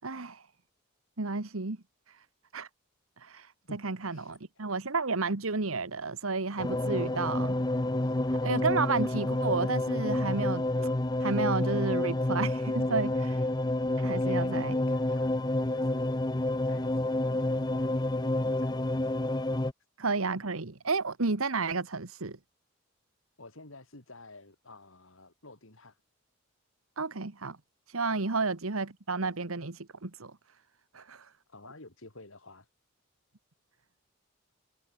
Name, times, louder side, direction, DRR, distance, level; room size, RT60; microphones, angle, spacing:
voice 1, 0.0-0.4 1.2-1.8 2.1-2.2 2.5-2.7 3.2-3.5 3.8-7.5 8.4-10.7 11.2-13.5 14.0-14.7 20.0-22.4 27.0-27.6 27.9-30.3 30.9-31.3, right 4 dB, 85° right, 1.4 m, -31 dB
voice 2, 3.6-4.7 7.9-8.2 14.1-19.1 23.4-26.0 31.0-32.7, left 2 dB, 70° left, 3.4 m, -51 dB
sound 1, 6.6-19.7, left 1 dB, 20° left, 0.6 m, -29 dB
head